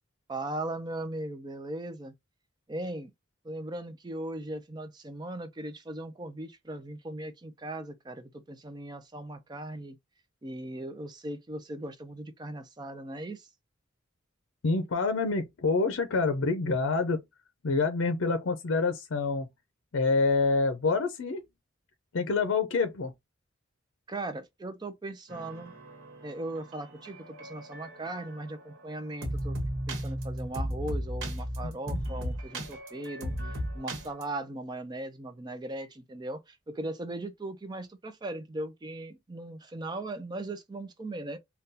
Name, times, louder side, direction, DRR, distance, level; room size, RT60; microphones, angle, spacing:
voice 1, 0.3-2.1 2.7-3.1 3.4-10.0 10.4-13.5 24.1-25.7 26.2-29.6 29.9-41.4, right 1 dB, 20° right, 0.4 m, -38 dB
voice 2, 14.6-17.2 17.6-19.5 19.9-21.4 22.1-23.1 31.6-31.7, left 3 dB, 80° left, 0.5 m, -27 dB
sound 1, 25.3-34.2, equal, 80° right, 1.2 m, -36 dB
3.7 x 2.2 x 2.6 m
head